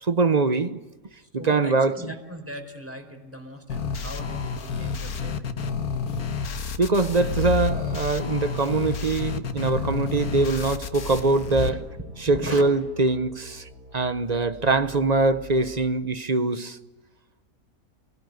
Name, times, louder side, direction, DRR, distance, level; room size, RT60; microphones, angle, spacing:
voice 1, 0.0-0.8 1.3-1.9 6.8-11.7 12.3-13.7 13.9-16.8, right 3 dB, 30° right, 0.9 m, -23 dB
voice 2, 1.2-5.8 11.5-11.9 12.2-12.6, equal, 10° right, 4.4 m, -38 dB
sound 1, 3.7-11.7, left 5 dB, 75° left, 1.9 m, -29 dB
sound 2, 8.9-15.9, equal, 90° right, 6.2 m, -47 dB
29.5 x 19.0 x 9.5 m
omnidirectional pair, 1.6 m